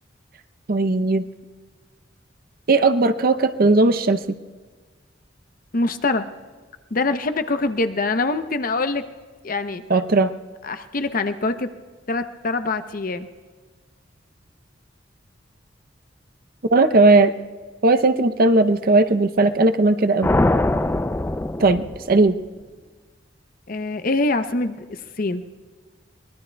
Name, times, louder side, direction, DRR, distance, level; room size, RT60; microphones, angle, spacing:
voice 1, 0.7-1.2 2.7-4.2 9.9-10.3 16.7-17.3 17.8-20.3 21.6-22.3, right 2 dB, 55° right, 10 dB, 0.6 m, -17 dB
voice 2, 5.7-6.3 6.9-9.0 9.4-9.8 10.6-11.7 12.1-13.3 23.7-25.4, left 3 dB, 50° left, 9 dB, 0.7 m, -24 dB
sound 1, 20.2-22.5, left 1 dB, 15° left, 0.4 m, -22 dB
23.5 x 20.0 x 2.3 m, 1.4 s
head